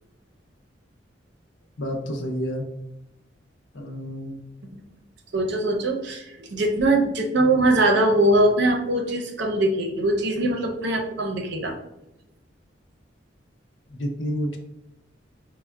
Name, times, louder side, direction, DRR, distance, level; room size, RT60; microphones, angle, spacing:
voice 1, 1.8-2.6 3.7-4.4 13.9-14.6, equal, 80° left, 2 dB, 0.6 m, -29 dB
voice 2, 5.3-11.7, right 1 dB, 65° right, 2 dB, 0.6 m, -22 dB
5.2 x 2.0 x 2.3 m, 0.87 s
head